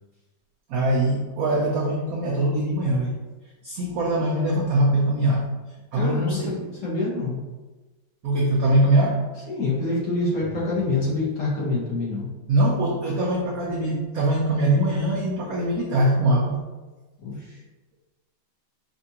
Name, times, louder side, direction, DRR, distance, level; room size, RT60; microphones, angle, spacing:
voice 1, 0.7-3.1 3.6-5.5 5.9-6.6 8.2-9.2 12.5-16.6, right 1 dB, 80° right, -2 dB, 0.8 m, -22 dB
voice 2, 5.9-7.4 9.5-12.3 17.2-17.6, left 2 dB, 50° left, -7 dB, 1.2 m, -26 dB
5.4 x 2.5 x 2.8 m, 1.2 s
omnidirectional pair, 2.1 m